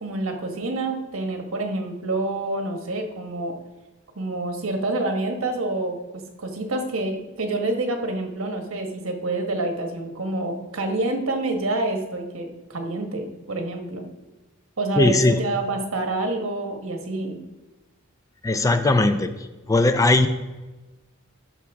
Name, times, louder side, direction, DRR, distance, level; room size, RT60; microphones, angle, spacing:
voice 1, 0.0-3.5 4.1-6.0 6.4-14.0 14.8-17.4, right 2 dB, 75° right, 4 dB, 1.3 m, -27 dB
voice 2, 15.0-15.4 18.4-19.3 19.7-20.3, left 2 dB, 15° left, 9 dB, 0.4 m, -18 dB
13.0 x 6.0 x 3.5 m, 1.2 s
head